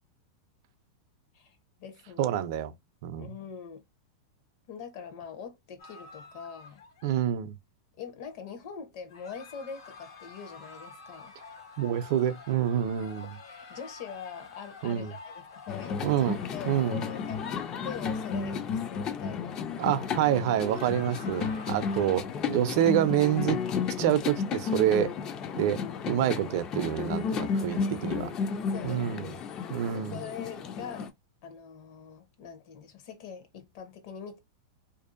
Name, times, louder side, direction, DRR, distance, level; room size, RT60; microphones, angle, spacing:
voice 1, 1.3-2.4 3.2-3.8 4.7-6.8 8.0-11.3 13.5-19.6 27.7-27.9 28.7-29.1 29.5-31.1 31.4-34.4, left 7 dB, 55° left, 0.7 m, -43 dB
voice 2, 2.2-2.7 3.0-3.3 7.0-7.6 11.8-13.4 14.8-15.1 16.0-16.4 16.7-17.0 19.8-23.6 24.0-25.1 25.5-25.8 26.1-28.3 28.8-29.3 29.7-30.2, right 11 dB, 55° right, 0.4 m, -27 dB
sound 1, 5.8-7.3 9.1-18.7 20.4-22.1, left 4 dB, 80° left, 1.0 m, -49 dB
sound 2, 15.7-31.1, left 6 dB, 30° left, 0.3 m, -33 dB
2.6 x 2.4 x 2.4 m
supercardioid pair, 145°, 2 cm